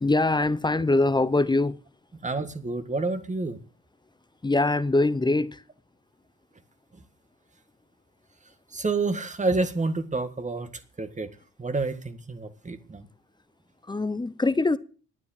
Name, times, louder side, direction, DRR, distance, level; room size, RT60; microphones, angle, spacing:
voice 1, 0.0-1.8 4.4-5.6 13.8-14.8, left 2 dB, 15° left, 0.7 m, -23 dB
voice 2, 2.2-3.6 8.7-11.3 11.6-13.1, right 3 dB, 25° right, 1.8 m, -29 dB
11.0 x 9.4 x 8.9 m
cardioid pair, 90°, 30 cm